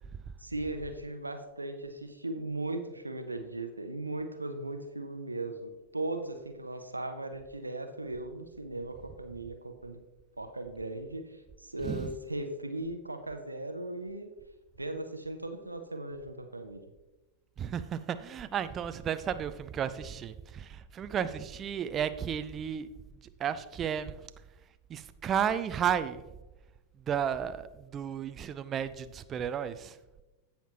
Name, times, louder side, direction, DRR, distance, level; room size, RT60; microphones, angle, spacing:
voice 1, 0.4-10.0 10.4-14.3 14.8-16.8, right 2 dB, 85° right, 6 dB, 0.8 m, -38 dB
voice 2, 17.6-22.9 23.4-24.3 24.9-26.2 27.0-30.0, right 8 dB, 25° right, 12 dB, 0.5 m, -33 dB
16.0 x 5.8 x 2.9 m, 1.1 s
figure-of-eight pair, 90°, 0 cm